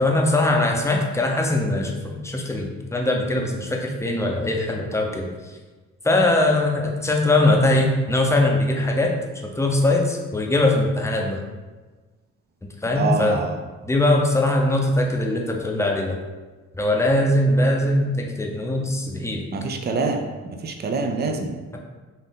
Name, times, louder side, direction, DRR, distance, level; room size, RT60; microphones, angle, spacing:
voice 1, 0.0-5.3 6.0-9.1 9.4-11.4 12.8-13.5 13.8-16.2 16.8-19.5, left 1 dB, 10° left, 1 dB, 0.6 m, -21 dB
voice 2, 13.0-13.6 19.5-20.2 20.5-21.8, right 4 dB, 35° right, 4 dB, 0.5 m, -25 dB
4.1 x 2.6 x 3.8 m, 1.3 s
cardioid pair, 90°, 30 cm